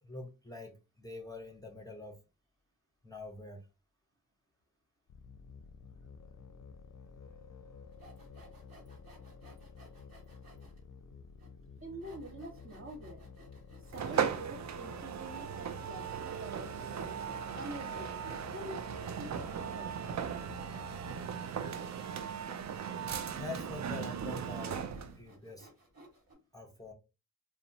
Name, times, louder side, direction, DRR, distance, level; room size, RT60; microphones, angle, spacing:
voice 1, 0.0-2.2 3.0-3.6 14.1-14.3 23.3-25.7 26.5-26.9, left 2 dB, 10° left, 0.7 m, -45 dB
sound 1, 5.1-21.3, left 5 dB, 55° left, 0.5 m, -51 dB
Sawing, 7.9-10.8 11.4-11.5 12.0-26.3, right 1 dB, 65° right, 1.3 m, -58 dB
voice 2, 11.8-13.3 13.8-16.7 17.5-18.2 18.5-20.0, right 1 dB, 35° right, 0.9 m, -46 dB
sound 2, 13.9-25.2, right 8 dB, 50° right, 0.4 m, -38 dB
2.7 x 2.1 x 2.6 m
cardioid pair, 50°, 36 cm